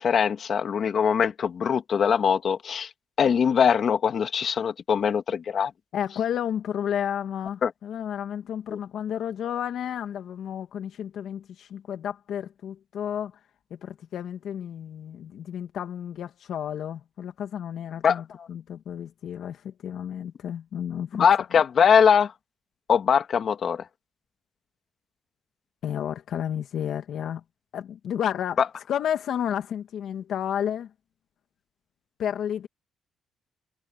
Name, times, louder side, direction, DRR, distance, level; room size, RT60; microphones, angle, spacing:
voice 1, 0.0-2.9 3.2-5.7 7.6-7.7 8.7-8.8 18.0-18.2 21.1-22.3 22.9-23.8, left 7 dB, 55° left, 2.4 m, -22 dB
voice 2, 5.9-13.3 13.7-21.3 25.8-27.4 27.7-28.6 28.9-30.9 32.2-32.7, left 9 dB, 70° left, 2.1 m, -31 dB
cardioid pair, 90°, 0 cm